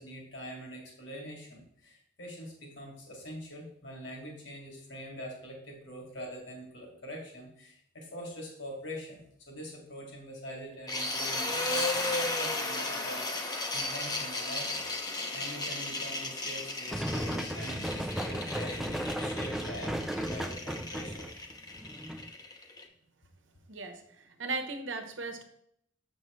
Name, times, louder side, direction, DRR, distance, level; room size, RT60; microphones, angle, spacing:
voice 1, 0.0-14.8 15.3-21.3, equal, 70° left, -1 dB, 2.1 m, -44 dB
sound 1, 10.9-22.8, left 2 dB, 20° left, 0.8 m, -35 dB
sound 2, 16.9-22.3, equal, ahead, 0.3 m, -35 dB
voice 2, 23.7-25.4, right 3 dB, 70° right, 6 dB, 1.1 m, -37 dB
7.3 x 6.1 x 3.1 m, 0.69 s
head